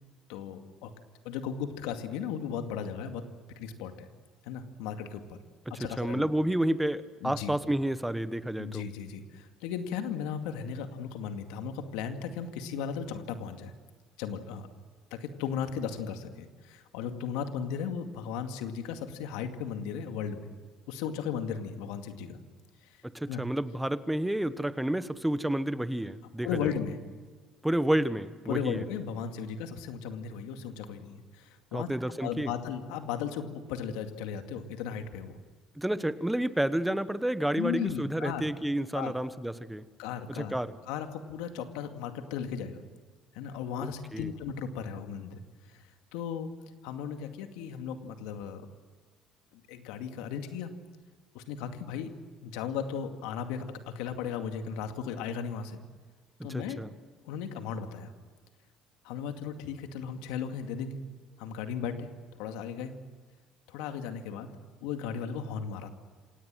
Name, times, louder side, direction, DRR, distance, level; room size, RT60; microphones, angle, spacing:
voice 1, 0.3-0.9 1.2-3.2 3.6-4.1 4.4-5.4 5.7-6.2 7.2-7.5 8.6-13.7 14.2-14.7 15.1-20.5 20.9-22.4 22.8-23.0 23.3-23.4 26.4-27.0 28.5-31.9 32.2-35.4 37.5-38.4 38.9-39.1 40.0-40.6 40.9-42.8 43.3-45.4 45.7-46.5 46.8-48.6 49.5-50.7 51.3-52.1 52.4-55.8 56.4-56.8 57.2-58.1 59.0-61.0 61.4-62.1 62.4-62.9 63.7-64.5 64.8-65.9, left 7 dB, 80° left, 6 dB, 2.2 m, -36 dB
voice 2, 6.0-8.9 23.1-26.7 27.6-28.8 31.7-32.5 35.8-39.9 40.3-40.7 43.8-44.3 56.5-56.9, right 1 dB, 5° right, 14 dB, 1.2 m, -30 dB
26.5 x 18.0 x 7.7 m, 1.5 s
supercardioid pair, 80°, 0 cm